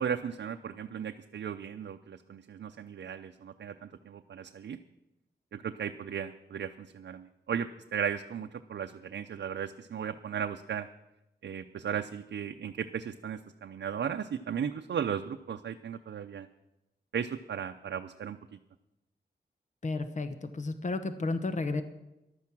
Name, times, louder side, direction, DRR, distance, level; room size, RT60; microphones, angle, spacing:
voice 1, 0.0-4.8 5.5-10.9 11.4-16.5 17.1-18.6, right 8 dB, 90° right, 6 dB, 0.6 m, -36 dB
voice 2, 19.8-21.8, left 3 dB, 45° left, 10 dB, 1.0 m, -32 dB
14.5 x 11.5 x 6.1 m, 0.93 s
wide cardioid pair, 115°, 18 cm